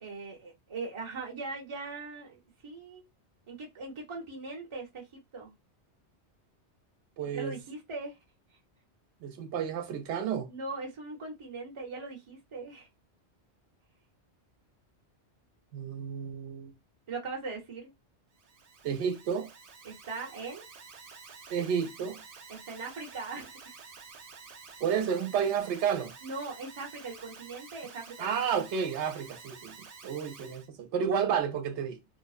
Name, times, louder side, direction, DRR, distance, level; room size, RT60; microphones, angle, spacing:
voice 1, 0.0-3.0 3.5-5.5 7.2-8.2 10.5-12.9 17.1-17.9 19.8-20.6 22.5-23.6 26.2-28.3, right 3 dB, 30° right, 0.7 m, -40 dB
voice 2, 7.2-7.6 9.2-10.5 15.7-16.7 18.8-19.5 21.5-22.2 24.8-26.1 28.2-29.7 30.0-32.0, right 7 dB, 85° right, 0.9 m, -31 dB
Alarm, 18.3-30.7, right 5 dB, 55° right, 0.4 m, -50 dB
2.6 x 2.1 x 2.3 m
omnidirectional pair, 1.2 m